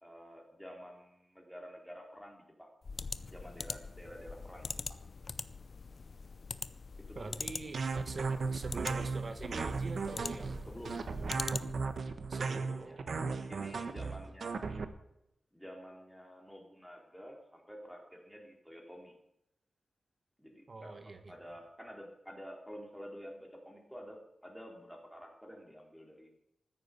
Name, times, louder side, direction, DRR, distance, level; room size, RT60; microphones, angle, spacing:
voice 1, 0.0-2.7 3.3-5.0 7.0-7.3 10.6-11.0 12.5-13.0 13.5-14.8 15.5-19.1 20.4-26.3, equal, ahead, 0 dB, 3.8 m, -50 dB
sound 1, 2.8-12.0, left 4 dB, 50° left, 0.6 m, -43 dB
voice 2, 7.2-10.6 12.3-13.2 20.7-21.4, right 3 dB, 45° right, 7 dB, 1.6 m, -45 dB
sound 2, 7.7-14.8, right 4 dB, 65° right, 1.3 m, -36 dB
14.0 x 9.9 x 8.3 m, 0.81 s
wide cardioid pair, 125°, 0 cm